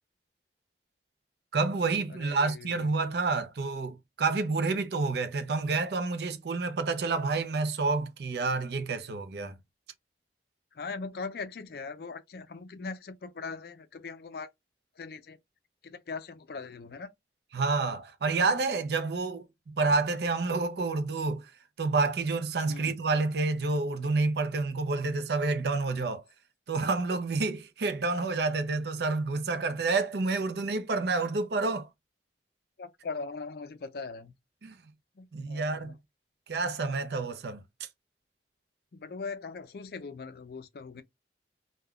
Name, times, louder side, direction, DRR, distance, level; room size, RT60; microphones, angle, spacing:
voice 1, 1.5-9.6 17.5-21.5 21.8-26.2 26.7-31.9 34.6-34.8 35.3-35.9 36.5-37.9, right 3 dB, 65° right, 0.5 m, -29 dB
voice 2, 2.1-2.9 10.7-14.5 15.0-15.4 15.8-17.1 22.7-23.0 32.8-34.3 35.2-36.0 38.9-41.0, left 4 dB, 55° left, 0.4 m, -40 dB
3.6 x 2.2 x 2.3 m
head